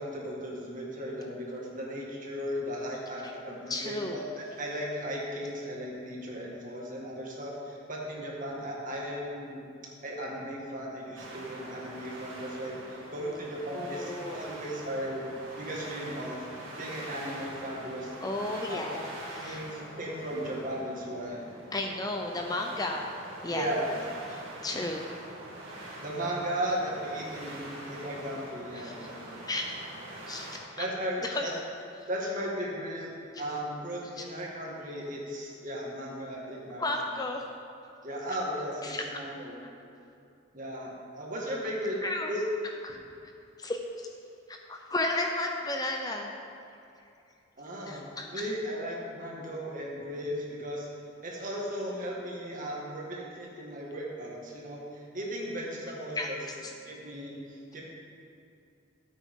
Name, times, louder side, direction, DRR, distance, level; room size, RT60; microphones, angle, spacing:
voice 1, 0.0-9.7 10.0-15.3 15.6-16.5 16.8-18.1 18.7-21.4 23.5-24.0 26.0-29.5 30.8-31.5 32.1-33.1 33.4-36.9 38.0-39.6 40.5-42.0 42.3-42.4 47.6-48.0 48.3-50.9 51.2-56.4 56.8-57.8, equal, 40° right, -3 dB, 1.9 m, -36 dB
voice 2, 3.7-4.2 13.7-14.4 18.2-19.0 19.4-19.6 21.7-23.1 23.4-23.7 24.3-25.0 28.7-28.9 29.5-29.8 30.3-30.8 31.2-31.4 32.0-32.1 33.3-33.4 36.8-37.5 38.8-39.2 39.6-39.7 42.0-42.3 42.8-43.0 43.6-44.1 44.7-46.3 47.9-48.5 56.2-56.3, left 2 dB, 20° left, 2 dB, 0.6 m, -33 dB
sound 1, 11.2-30.6, right 1 dB, 80° right, 2.0 m, -44 dB
13.5 x 8.3 x 3.7 m, 2.6 s
head